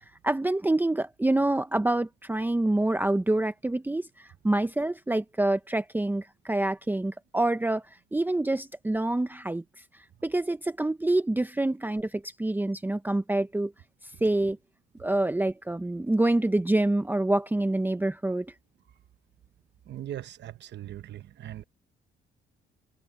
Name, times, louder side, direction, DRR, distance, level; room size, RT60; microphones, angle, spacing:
voice 1, 0.2-7.8 8.1-9.6 10.2-13.7 14.2-14.6 15.0-18.5, right 2 dB, 10° right, 0.8 m, -26 dB
voice 2, 19.9-21.6, right 12 dB, 60° right, 0.9 m, -40 dB
cardioid pair, 90°, 20 cm